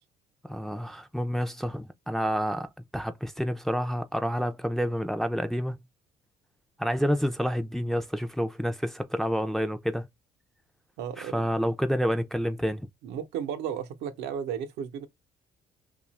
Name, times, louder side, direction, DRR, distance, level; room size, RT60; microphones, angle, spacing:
voice 1, 0.5-5.8 6.8-10.1 11.2-12.9, equal, ahead, 0.4 m, -29 dB
voice 2, 11.0-11.5 13.0-15.1, right 8 dB, 85° right, 0.7 m, -34 dB
2.7 x 2.4 x 4.1 m
cardioid pair, 110°, 17 cm